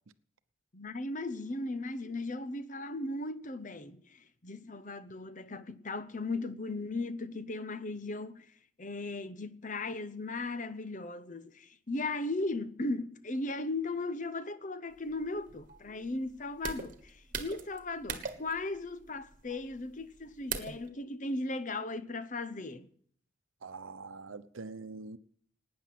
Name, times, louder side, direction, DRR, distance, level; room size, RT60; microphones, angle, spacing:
voice 1, 0.7-8.5 8.8-22.9, left 2 dB, 40° left, 0.8 m, -37 dB
sound 1, 14.9-20.9, right 6 dB, 40° right, 1.5 m, -42 dB
voice 2, 23.6-25.2, right 3 dB, 85° right, 0.9 m, -44 dB
18.5 x 9.6 x 7.6 m
head